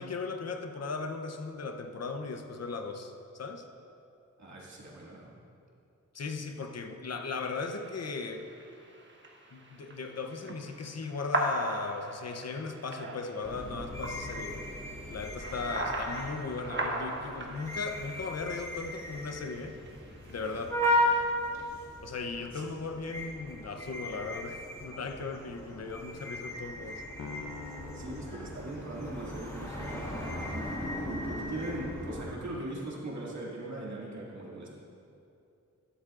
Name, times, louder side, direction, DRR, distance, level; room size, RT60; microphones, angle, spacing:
voice 1, 0.0-3.6 6.1-8.5 9.5-14.6 15.1-19.8 20.3-20.8 22.0-27.0, left 4 dB, 55° left, 6 dB, 0.8 m, -37 dB
voice 2, 4.4-5.3 22.5-22.7 27.9-34.7, right 1 dB, 65° right, -5 dB, 2.4 m, -40 dB
sound 1, 7.3-21.2, right 1 dB, 40° right, 1.3 m, -39 dB
sound 2, 13.4-32.3, left 1 dB, 10° left, 1.9 m, -36 dB
Piano, 27.2-29.6, left 4 dB, 85° left, 0.8 m, -46 dB
13.0 x 12.5 x 2.5 m, 2.7 s
wide cardioid pair, 105°, 31 cm